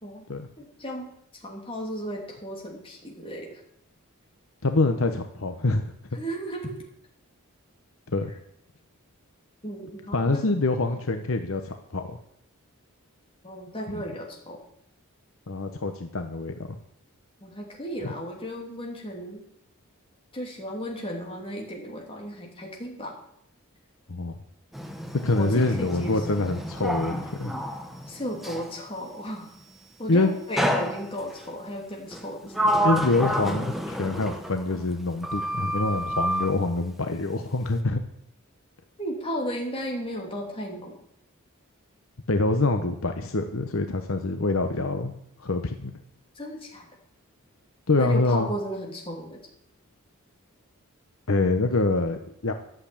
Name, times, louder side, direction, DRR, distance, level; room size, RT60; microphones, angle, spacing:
voice 1, 0.6-3.6 6.1-6.7 9.6-10.4 13.4-14.6 17.4-19.4 20.3-23.2 25.3-26.4 28.1-29.5 30.0-32.7 39.0-41.0 46.3-46.9 48.0-49.4, equal, 25° left, 0 dB, 3.0 m, -34 dB
voice 2, 4.6-5.9 8.1-8.3 10.1-12.2 13.9-14.0 15.5-16.6 18.0-18.1 24.1-24.4 25.2-27.5 30.1-30.3 32.8-38.0 42.3-45.1 45.4-46.0 47.9-48.5 51.3-52.5, left 2 dB, 65° left, 6 dB, 0.9 m, -25 dB
Sliding door, 24.7-28.8 30.6-31.5 32.1-35.0 35.2-36.6, equal, ahead, 1.0 m, -29 dB
12.0 x 7.8 x 8.6 m, 0.73 s
head